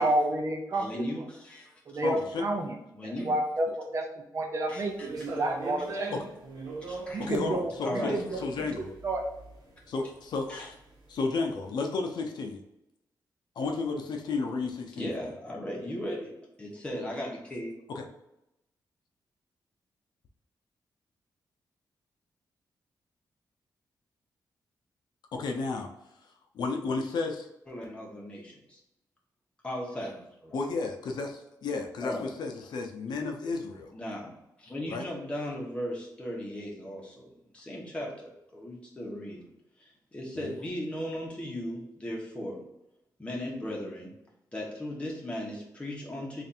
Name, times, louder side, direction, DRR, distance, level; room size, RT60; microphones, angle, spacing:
voice 1, 0.0-1.0 1.9-2.8 3.0-4.1 4.3-6.2 7.1-9.3, right 1 dB, 40° right, 4 dB, 0.6 m, -30 dB
voice 2, 0.7-1.7 2.9-3.3 4.7-5.1 6.9-7.3 7.8-8.2 10.5-10.7 15.0-17.7 27.7-28.8 29.6-30.6 32.0-32.3 33.9-34.3 34.6-39.5 39.8-42.6 43.2-44.1 44.5-46.4, equal, 15° left, -3 dB, 1.0 m, -37 dB
voice 3, 2.0-2.4 6.1-6.2 7.2-8.9 9.9-10.8 11.1-12.6 13.6-15.1 17.9-18.0 25.3-25.9 26.5-27.5 30.5-33.9 34.9-35.1 40.3-40.5, left 4 dB, 80° left, 3 dB, 0.6 m, -32 dB
sound 1, 4.8-11.1, right 2 dB, 60° right, 1.1 m, -40 dB
3.3 x 2.5 x 4.2 m, 0.86 s
wide cardioid pair, 145°, 7 cm